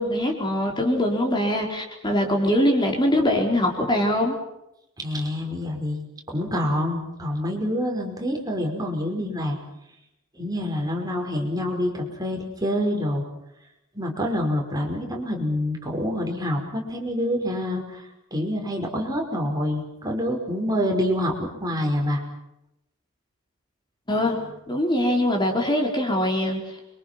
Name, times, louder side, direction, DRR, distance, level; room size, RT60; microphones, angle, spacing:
voice 1, 0.0-4.3 24.1-26.6, left 1 dB, 20° left, 1 dB, 4.7 m, -23 dB
voice 2, 5.0-9.6 10.3-13.2 13.9-18.1 18.3-22.2, equal, 20° right, 1 dB, 5.3 m, -27 dB
29.5 x 24.5 x 6.0 m, 0.84 s
head